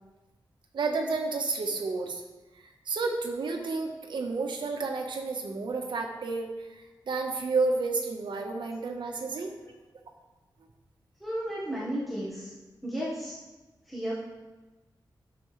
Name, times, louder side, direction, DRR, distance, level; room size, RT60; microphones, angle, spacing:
voice 1, 0.7-2.2 2.6-9.5, right 3 dB, 80° right, 2 dB, 1.2 m, -31 dB
voice 2, 11.2-12.5 12.8-13.3 13.9-14.1, equal, ahead, -8 dB, 1.5 m, -33 dB
11.5 x 6.9 x 3.3 m, 1.1 s
wide cardioid pair, 170°, 8 cm